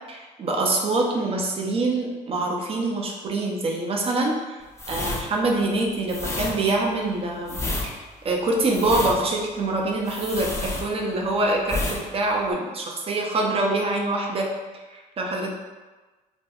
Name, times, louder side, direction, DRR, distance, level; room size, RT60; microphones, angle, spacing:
voice 1, 0.1-14.5 14.9-15.5, right 2 dB, 35° right, 0 dB, 0.6 m, -25 dB
sound 1, 4.7-11.3 11.6-12.0 12.3-12.5, left 2 dB, 15° left, 0.5 m, -30 dB
4.3 x 2.2 x 2.3 m, 1.3 s
cardioid pair, 110°, 17 cm